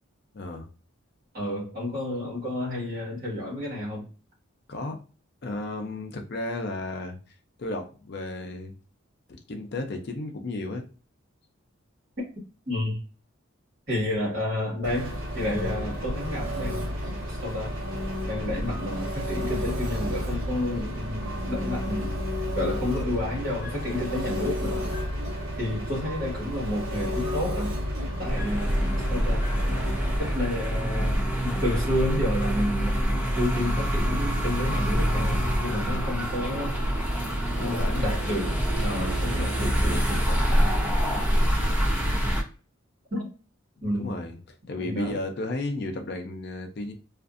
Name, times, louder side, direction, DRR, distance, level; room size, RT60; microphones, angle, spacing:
voice 1, 0.3-0.7 4.7-5.0 5.4-7.2 7.6-8.7 9.3-10.9 37.6-38.2 41.7-42.2 43.9-44.4 44.7-46.9, left 2 dB, 50° left, 0.5 m, -33 dB
voice 2, 1.3-4.1 12.7-13.0 13.9-17.8 18.3-22.2 22.5-24.9 25.6-27.7 28.2-29.5 30.2-33.0 33.3-36.8 37.6-38.5 38.8-40.7 43.1-43.3 43.8-44.2 44.8-45.2, left 1 dB, 45° right, 1.4 m, -31 dB
Engine, 14.8-30.4, equal, 80° right, 0.9 m, -32 dB
sound 1, 18.7-19.1 21.2-30.5 32.8-37.8, equal, 35° left, 1.1 m, -50 dB
sound 2, 28.2-42.4, equal, 10° right, 0.5 m, -25 dB
2.5 x 2.4 x 2.4 m
head